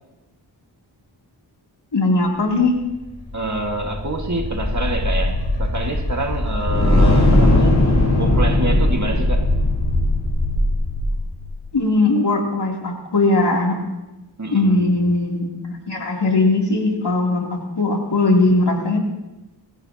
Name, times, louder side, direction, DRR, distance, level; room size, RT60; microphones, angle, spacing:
voice 1, 1.9-2.7 11.7-13.8 14.5-19.0, left 2 dB, 65° left, -1 dB, 3.2 m, -19 dB
sound 1, 3.1-11.5, left 1 dB, 40° left, 5.5 m, -18 dB
voice 2, 3.3-7.8 8.2-9.5 14.4-15.0, right 2 dB, 40° right, 3 dB, 1.9 m, -27 dB
22.0 x 15.5 x 2.9 m, 1.0 s
wide cardioid pair, 75°, 45 cm